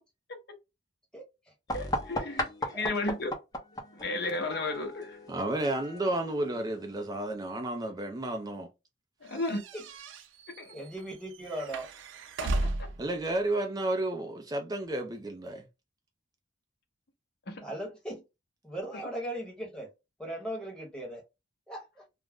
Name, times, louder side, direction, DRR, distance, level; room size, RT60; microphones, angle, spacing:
voice 1, 1.7-3.3 3.9-5.2 9.2-9.6 10.6-10.8 12.4-12.9 17.5-17.6 18.9-19.1, left 2 dB, 60° left, 0.8 m, -34 dB
sound 1, 1.7-7.2, left 1 dB, 20° left, 0.6 m, -37 dB
voice 2, 5.3-8.7 13.0-15.7, right 1 dB, 20° right, 0.3 m, -32 dB
sound 2, 9.3-13.1, right 2 dB, 85° right, 0.4 m, -35 dB
voice 3, 10.7-11.9 17.6-18.2 18.6-19.9 20.2-21.2 21.7-22.0, right 1 dB, 5° left, 1.0 m, -38 dB
2.4 x 2.0 x 3.4 m
head